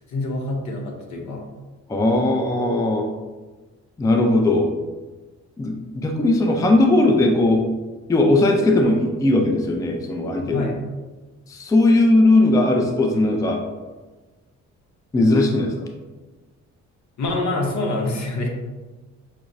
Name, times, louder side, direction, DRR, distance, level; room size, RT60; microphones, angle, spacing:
voice 1, 0.1-1.5 10.5-10.8 17.2-18.5, left 2 dB, 70° left, 1 dB, 0.8 m, -26 dB
voice 2, 1.9-3.0 4.0-4.7 5.6-7.6 8.1-10.7 11.5-13.6 15.1-15.7, left 2 dB, 10° left, 3 dB, 0.4 m, -18 dB
5.8 x 2.0 x 2.6 m, 1.2 s
cardioid pair, 90°, 30 cm